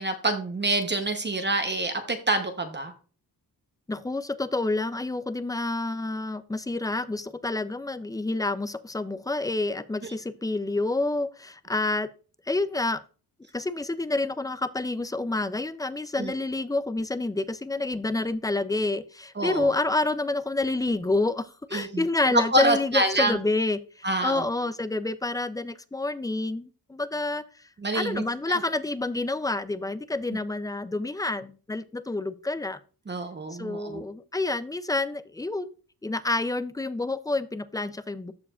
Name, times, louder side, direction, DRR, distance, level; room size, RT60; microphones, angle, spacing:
voice 1, 0.0-2.9 16.2-16.3 19.4-19.7 21.7-22.0 22.3-23.3 24.0-24.4 27.8-28.6 33.1-34.0, right 2 dB, 30° right, 6 dB, 0.9 m, -26 dB
voice 2, 3.9-12.1 12.5-13.0 13.5-27.4 27.9-32.8 33.5-35.8 36.0-38.3, left 2 dB, 10° left, 13 dB, 0.4 m, -28 dB
13.5 x 4.8 x 2.4 m, 0.37 s
wide cardioid pair, 115°, 38 cm